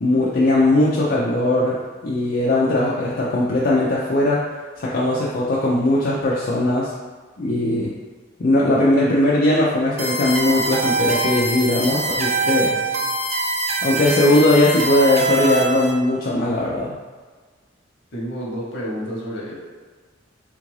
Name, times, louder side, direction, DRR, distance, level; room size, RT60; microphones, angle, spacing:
voice 1, 0.0-1.8 2.0-4.4 4.8-6.9 7.4-7.9 8.4-12.7 13.8-17.0, left 1 dB, 50° left, -6 dB, 0.4 m, -19 dB
sound 1, 10.0-15.9, right 2 dB, 35° right, 0.4 m, -23 dB
voice 2, 18.1-19.6, equal, 65° left, -5 dB, 1.0 m, -30 dB
3.6 x 2.5 x 3.1 m, 1.4 s
head